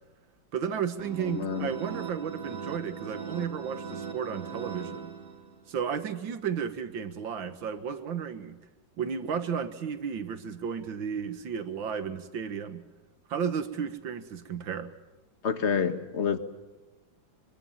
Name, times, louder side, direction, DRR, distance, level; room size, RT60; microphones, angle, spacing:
voice 1, 0.5-5.1 5.7-8.6 9.0-12.9 13.3-14.9, right 7 dB, 80° right, 10 dB, 2.2 m, -33 dB
sound 1, 1.0-5.7, right 5 dB, 45° right, 2.6 m, -40 dB
voice 2, 1.2-1.7 15.4-16.4, left 6 dB, 35° left, 10 dB, 1.6 m, -28 dB
25.0 x 23.5 x 7.3 m, 1.2 s
omnidirectional pair, 2.1 m